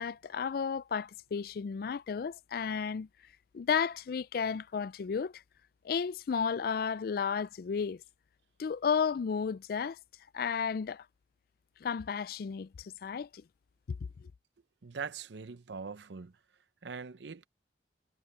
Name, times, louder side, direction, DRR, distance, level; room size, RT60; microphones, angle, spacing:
voice 1, 0.0-3.1 3.5-5.3 5.8-8.0 8.6-10.0 10.3-11.0 11.8-13.4, left 6 dB, 55° left, 0.3 m, -33 dB
voice 2, 14.8-16.4 16.8-17.5, right 5 dB, 75° right, 0.6 m, -42 dB
head